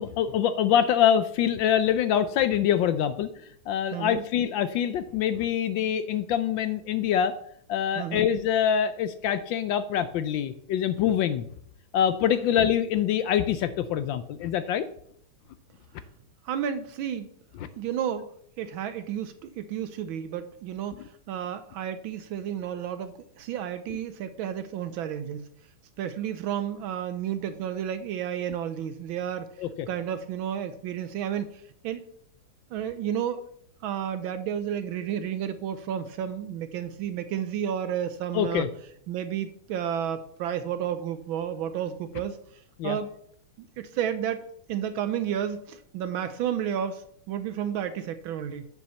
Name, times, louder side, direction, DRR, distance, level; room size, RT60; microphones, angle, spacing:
voice 1, 0.0-7.3 7.7-11.5 11.9-14.9 17.6-17.7 29.6-29.9 38.3-38.7 42.8-43.0, left 9 dB, 75° left, 12 dB, 1.2 m, -25 dB
voice 2, 3.9-4.2 8.0-8.2 16.4-17.3 17.8-18.3 18.6-25.4 26.0-29.5 29.9-31.5 31.8-32.0 32.7-33.4 33.8-38.7 39.1-42.4 42.8-43.1 43.8-44.4 44.7-48.7, right 9 dB, 75° right, 11 dB, 1.3 m, -31 dB
7.0 x 6.4 x 6.9 m, 0.68 s
omnidirectional pair, 2.4 m